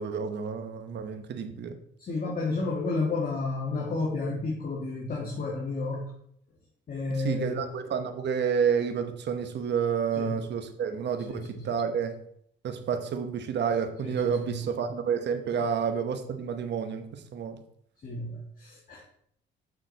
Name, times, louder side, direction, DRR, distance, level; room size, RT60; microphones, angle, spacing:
voice 1, 0.0-1.8 7.2-12.2 12.6-17.6, right 7 dB, 60° right, 0.9 m, -30 dB
voice 2, 2.0-6.1 6.9-7.6 10.1-10.4 11.3-11.8 14.0-14.6 18.0-19.0, left 3 dB, 45° left, 1.9 m, -31 dB
6.8 x 6.1 x 4.0 m
cardioid pair, 90°, 20 cm